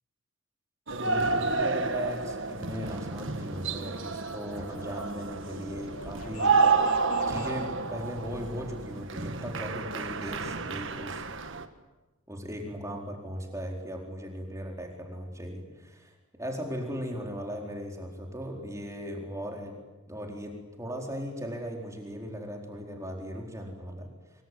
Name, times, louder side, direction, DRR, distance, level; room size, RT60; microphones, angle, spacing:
voice 1, 0.9-6.8 7.3-11.2 12.3-16.1 16.4-19.8 20.1-24.1, equal, 15° right, 1 dB, 4.4 m, -38 dB
sound 1, 0.9-11.7, right 4 dB, 55° right, 1.7 m, -30 dB
sound 2, 2.2-7.7, left 1 dB, 80° left, 3.2 m, -49 dB
25.0 x 24.0 x 9.4 m, 1.2 s
head